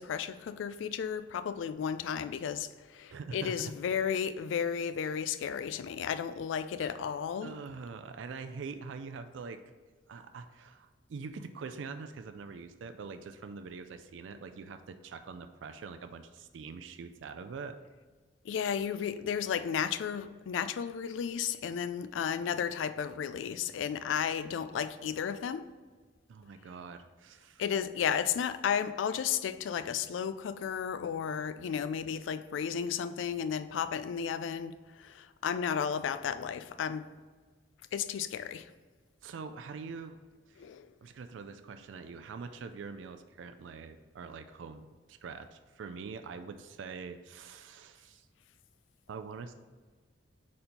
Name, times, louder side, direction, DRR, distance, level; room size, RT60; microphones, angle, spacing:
voice 1, 0.0-7.5 18.4-25.6 27.6-37.1 37.9-38.7 40.6-40.9, left 7 dB, 75° left, 0.3 m, -33 dB
voice 2, 3.1-3.7 6.8-7.0 7.4-9.6 10.1-17.8 26.3-27.6 39.2-40.2 40.5-40.6 41.0-48.3 49.1-49.5, right 5 dB, 75° right, 0.4 m, -44 dB
4.3 x 4.2 x 5.1 m
head